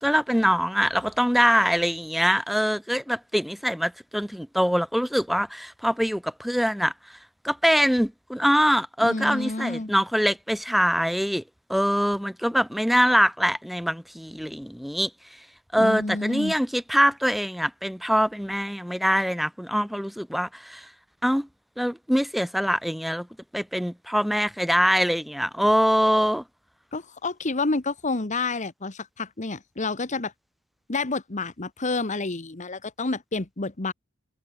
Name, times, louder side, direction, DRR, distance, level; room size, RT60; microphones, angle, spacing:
voice 1, 0.0-7.2 7.4-11.4 11.7-15.1 15.7-20.9 21.2-21.5 21.8-23.3 23.5-26.4, equal, ahead, 1.8 m, -23 dB
voice 2, 9.0-9.9 15.8-16.5 26.9-30.3 30.9-33.9, left 3 dB, 35° left, 1.3 m, -29 dB
head